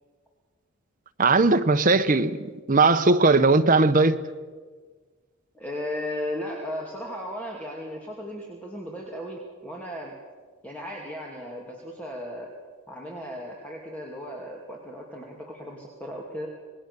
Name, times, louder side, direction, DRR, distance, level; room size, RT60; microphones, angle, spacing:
voice 1, 1.2-2.4 2.7-4.2, right 3 dB, 35° right, 1.0 m, -19 dB
voice 2, 5.5-10.1 10.6-12.5 12.9-16.5, left 1 dB, 5° left, 2.6 m, -36 dB
27.5 x 20.0 x 7.0 m
head